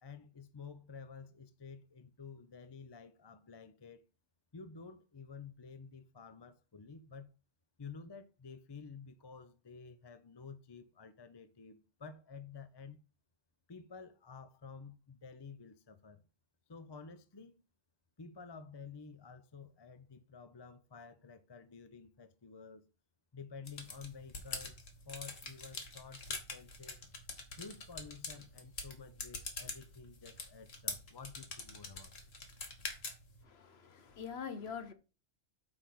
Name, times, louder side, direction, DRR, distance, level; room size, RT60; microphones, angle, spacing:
voice 1, 0.0-4.0 4.5-7.3 7.8-13.0 13.7-16.2 16.7-17.5 18.2-22.8 23.3-27.0 27.6-32.1, left 5 dB, 30° left, 0.5 m, -51 dB
sound 1, 23.7-33.4, left 3 dB, 75° left, 2.0 m, -45 dB
voice 2, 33.4-34.9, left 7 dB, 55° left, 1.1 m, -44 dB
8.7 x 3.5 x 6.1 m
omnidirectional pair, 1.3 m